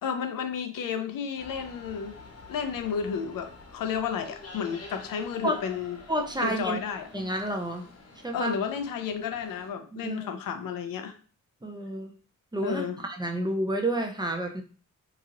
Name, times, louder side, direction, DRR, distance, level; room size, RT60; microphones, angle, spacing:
voice 1, 0.0-2.2 2.5-6.0 6.4-7.1 8.3-11.1 12.6-13.0, left 7 dB, 90° left, 7 dB, 0.5 m, -32 dB
sound 1, 1.4-9.7, left 3 dB, 50° left, 0.7 m, -48 dB
voice 2, 6.1-6.8 7.1-7.9 8.2-8.6 9.9-10.2 11.6-12.1 12.5-14.6, right 1 dB, 15° right, 3 dB, 0.5 m, -30 dB
2.9 x 2.7 x 2.5 m, 0.40 s
cardioid pair, 80°, 33 cm